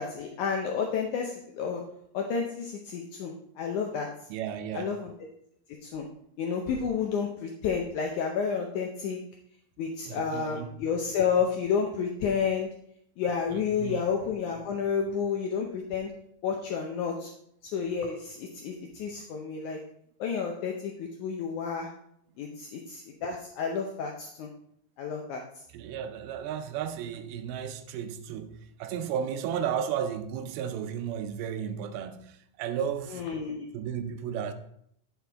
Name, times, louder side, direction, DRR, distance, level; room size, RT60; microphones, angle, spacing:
voice 1, 0.0-1.8 2.1-4.1 4.7-5.1 5.8-6.1 6.4-9.2 9.8-12.7 13.2-16.1 16.4-17.3 17.7-19.8 20.2-21.9 22.4-24.5 25.0-25.4 33.1-33.7, left 6 dB, 80° left, 1.7 m, -30 dB
voice 2, 4.3-5.0 10.0-10.7 13.5-14.0 22.5-22.6 25.7-33.2 33.7-34.5, right 8 dB, 85° right, 2.6 m, -34 dB
9.6 x 6.0 x 3.4 m
omnidirectional pair, 4.3 m